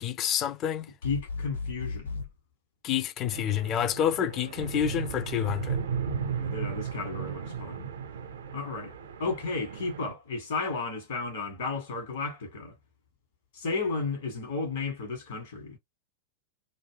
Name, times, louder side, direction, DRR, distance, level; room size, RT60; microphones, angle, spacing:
voice 1, 0.0-0.9 2.8-5.8, left 10 dB, 35° left, 0.4 m, -28 dB
sound 1, 1.0-2.3, left 4 dB, 90° left, 1.2 m, -35 dB
voice 2, 1.0-2.2 6.3-7.9 8.5-12.7 13.5-15.8, left 4 dB, 65° left, 1.2 m, -33 dB
sound 2, 3.3-10.1, right 7 dB, 65° right, 0.5 m, -35 dB
2.4 x 2.1 x 3.3 m
figure-of-eight pair, 90°, 0 cm